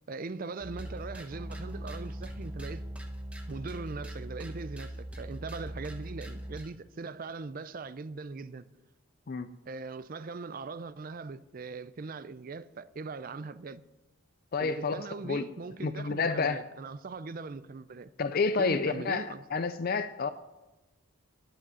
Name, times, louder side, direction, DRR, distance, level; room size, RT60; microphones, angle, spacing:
voice 1, 0.1-2.9 3.5-8.7 9.7-13.8 14.6-18.1 18.6-19.4, right 4 dB, 40° right, 0.4 m, -40 dB
sound 1, 0.6-6.7, right 1 dB, 5° right, 1.1 m, -40 dB
voice 2, 14.5-15.4 15.8-16.6 18.2-20.3, left 4 dB, 45° left, 0.4 m, -30 dB
10.0 x 7.9 x 9.4 m
head